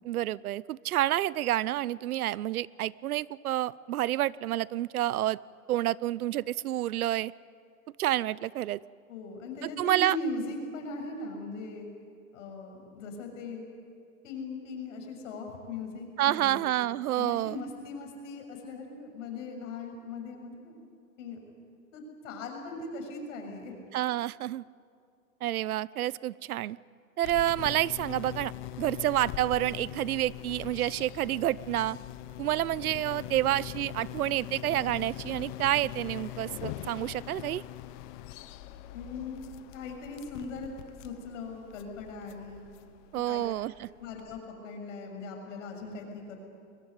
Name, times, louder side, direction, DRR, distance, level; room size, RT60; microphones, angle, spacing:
voice 1, 0.0-5.4 5.7-7.3 8.0-8.8 9.6-10.2 16.2-17.6 23.9-24.6 25.4-26.8 27.2-28.5 28.8-32.0 32.4-37.6 43.1-43.9, right 14 dB, 80° right, 22 dB, 0.7 m, -29 dB
voice 2, 9.1-11.9 12.3-13.7 14.2-16.8 17.1-20.8 21.2-21.5 21.9-23.7 38.9-40.7 41.0-42.7 43.3-43.4 44.0-46.4, left 3 dB, 60° left, 3 dB, 6.8 m, -39 dB
sound 1, 27.2-44.4, left 14 dB, 35° left, 0.9 m, -42 dB
22.5 x 20.5 x 9.3 m, 2.3 s
hypercardioid pair, 150°, 43 cm